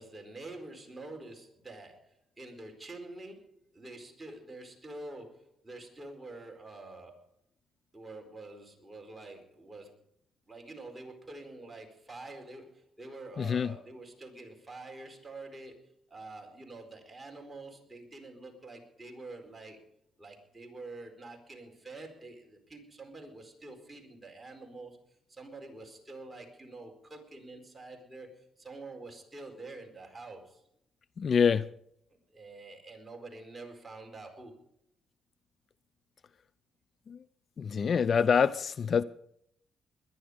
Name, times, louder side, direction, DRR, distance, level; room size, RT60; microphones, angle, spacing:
voice 1, 0.0-7.3 7.9-10.0 10.5-19.8 20.2-25.0 25.3-30.6 32.1-34.6, right 2 dB, 15° right, 2 dB, 4.4 m, -47 dB
voice 2, 13.4-13.7 31.2-31.7 37.1-37.2 37.6-39.0, left 6 dB, 50° left, 17 dB, 0.5 m, -26 dB
21.5 x 11.0 x 5.1 m, 0.71 s
cardioid pair, 90°, 0 cm